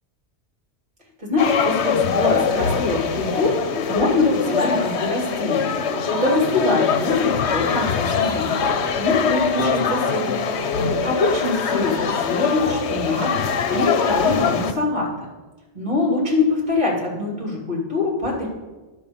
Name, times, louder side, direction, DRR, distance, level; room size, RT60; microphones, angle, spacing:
voice 1, 1.2-5.7 6.1-8.6 9.0-10.4 11.0-15.1 15.7-18.5, left 2 dB, 50° right, -4 dB, 3.3 m, -23 dB
sound 1, 1.4-14.7, left 6 dB, 75° left, 1.0 m, -23 dB
10.0 x 5.2 x 7.1 m, 1.2 s
omnidirectional pair, 1.2 m